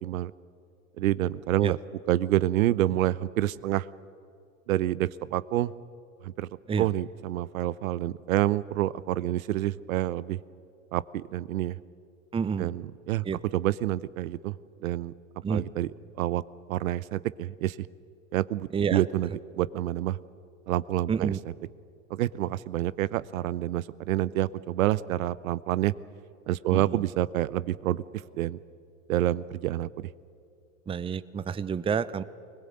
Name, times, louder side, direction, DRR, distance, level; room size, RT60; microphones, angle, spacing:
voice 1, 0.0-0.3 1.0-1.8 2.1-3.9 4.7-5.7 6.2-6.5 6.8-10.4 10.9-11.8 12.6-13.2 13.5-14.5 14.8-15.1 15.5-15.9 16.2-16.4 16.7-17.9 18.3-19.3 19.6-20.2 20.7-21.3 22.1-25.9 26.5-28.0 28.4-28.6 29.1-30.1, right 14 dB, 75° right, 19 dB, 0.7 m, -28 dB
voice 2, 12.3-12.7 13.2-13.4 15.4-15.7 18.7-19.0 21.1-21.4 26.7-27.0 30.9-32.2, right 6 dB, 15° right, 15 dB, 0.6 m, -29 dB
21.0 x 20.0 x 7.8 m, 2.4 s
hypercardioid pair, 90°, 42 cm